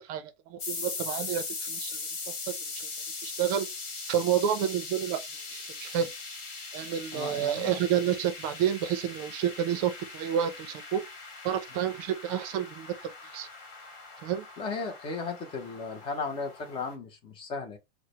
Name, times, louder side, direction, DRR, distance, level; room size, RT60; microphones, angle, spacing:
voice 1, 0.0-2.0 2.8-2.9 3.2-3.7 4.1-5.2 5.5-6.1 6.7-11.0 11.4-13.5 14.2-14.5, right 9 dB, 35° right, 0.5 m, -29 dB
sound 1, 0.6-16.9, left 4 dB, 50° left, 1.5 m, -40 dB
voice 2, 7.1-7.8 11.7-11.8 14.6-17.8, left 4 dB, 15° left, 0.6 m, -35 dB
4.7 x 2.1 x 2.9 m
supercardioid pair, 160°, 30 cm